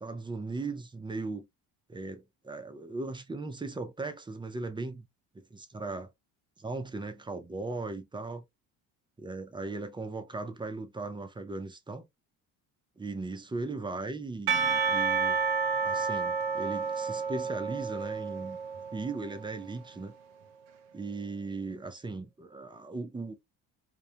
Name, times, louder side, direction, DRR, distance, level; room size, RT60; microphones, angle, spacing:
voice 1, 0.0-1.4 1.9-5.1 5.3-6.1 6.6-8.4 9.2-12.0 13.0-15.4 15.8-18.6 18.9-20.1 20.9-23.3, right 3 dB, 10° right, 0.4 m, -38 dB
Percussion / Church bell, 14.5-19.5, right 5 dB, 75° right, 0.7 m, -30 dB
2.4 x 2.1 x 2.7 m
supercardioid pair, 75°, 44 cm